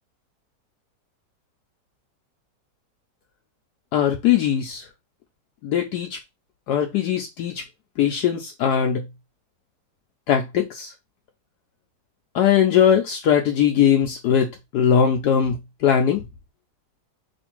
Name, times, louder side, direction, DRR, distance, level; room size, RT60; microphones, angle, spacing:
voice 1, 3.9-4.8 5.6-6.2 6.7-7.6 8.0-9.0 10.3-10.9 12.3-15.6 15.8-16.2, left 8 dB, 70° left, 1.1 m, -20 dB
3.2 x 2.6 x 4.4 m
omnidirectional pair, 1.9 m